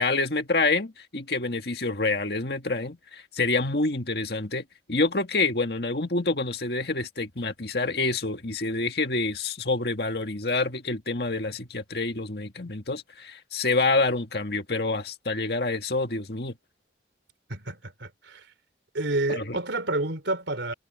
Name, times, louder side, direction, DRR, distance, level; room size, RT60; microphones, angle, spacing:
voice 1, 0.0-16.5 19.3-19.6, left 3 dB, 60° left, 1.8 m, -27 dB
voice 2, 17.5-18.4 18.9-20.7, right 2 dB, 85° right, 3.1 m, -29 dB
head